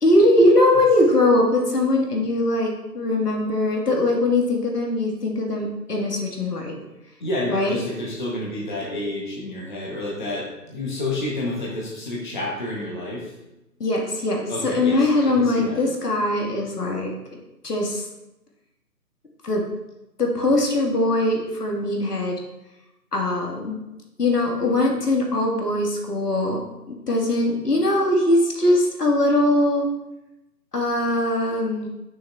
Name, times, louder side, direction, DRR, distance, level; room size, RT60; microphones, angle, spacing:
voice 1, 0.0-6.8 7.5-7.8 13.8-17.1 17.6-18.1 19.4-19.6 20.2-22.4 23.1-23.8 24.2-26.6 26.9-29.9 30.7-31.9, left 1 dB, 65° left, 0 dB, 1.8 m, -21 dB
voice 2, 7.2-13.3 14.5-15.8, left 1 dB, 30° left, -5 dB, 0.9 m, -29 dB
9.2 x 6.3 x 2.3 m, 0.96 s
figure-of-eight pair, 155°, 50 cm